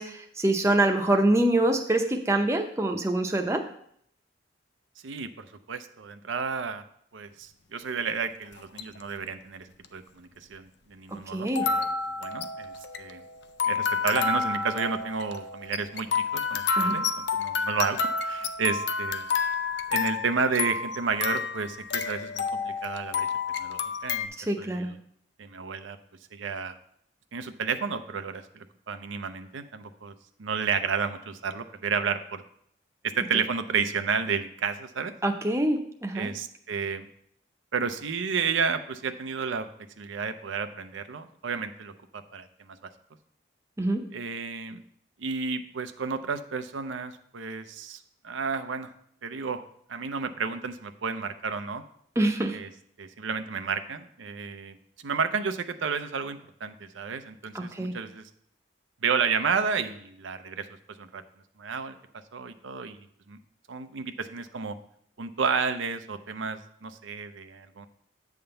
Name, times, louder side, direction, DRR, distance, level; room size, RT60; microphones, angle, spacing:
voice 1, 0.0-3.6 11.3-11.6 16.8-17.0 24.4-24.9 35.2-36.3 43.8-44.0 52.2-52.5 57.5-57.9, right 1 dB, 15° right, 4 dB, 0.6 m, -25 dB
voice 2, 5.0-6.8 7.1-11.9 12.2-13.2 13.7-19.2 19.9-23.3 23.6-24.3 24.6-25.0 25.4-26.0 26.3-26.8 27.3-30.1 30.4-32.4 33.0-35.1 36.1-37.1 37.7-39.7 40.0-42.5 44.1-44.8 45.2-48.0 48.2-48.9 49.2-49.6 49.9-51.8 52.5-52.7 53.0-54.8 55.0-58.2 59.0-60.7 61.0-61.2 61.6-61.9 62.3-63.0 63.3-63.4 63.7-64.8 65.2-67.9, right 5 dB, 90° right, 9 dB, 0.6 m, -31 dB
sound 1, 8.5-9.0 9.8-9.9 11.5-24.3, left 5 dB, 65° left, 0.5 m, -30 dB
8.7 x 3.6 x 6.8 m, 0.67 s
head